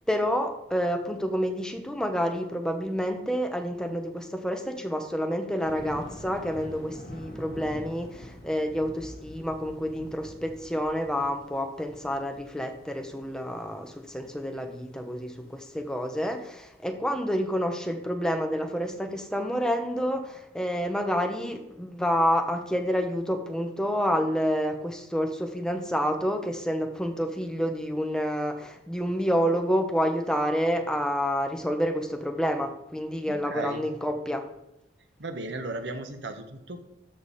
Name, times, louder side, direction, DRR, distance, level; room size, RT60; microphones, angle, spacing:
voice 1, 0.1-34.4, equal, 5° left, 5 dB, 1.1 m, -28 dB
Thunder, 5.6-16.7, left 1 dB, 55° left, 1.8 m, -46 dB
voice 2, 33.2-33.8 35.2-36.8, right 2 dB, 85° right, 7 dB, 1.3 m, -35 dB
13.0 x 5.4 x 4.2 m, 0.89 s
head